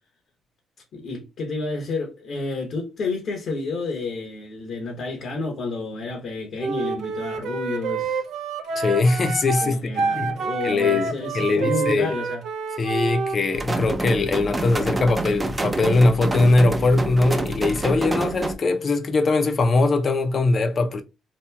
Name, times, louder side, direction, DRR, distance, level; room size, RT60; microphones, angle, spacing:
voice 1, 0.9-8.2 9.6-12.4, left 3 dB, 70° left, 0.9 m, -30 dB
Wind instrument woodwind instrument, 6.6-13.4, right 4 dB, 80° right, 0.4 m, -28 dB
voice 2, 8.8-10.3 10.6-12.1 12.8-21.0, left 3 dB, 45° left, 0.5 m, -21 dB
sound 1, 13.5-18.6, right 2 dB, 20° right, 0.5 m, -27 dB
2.9 x 2.7 x 2.2 m
cardioid pair, 90°, 0 cm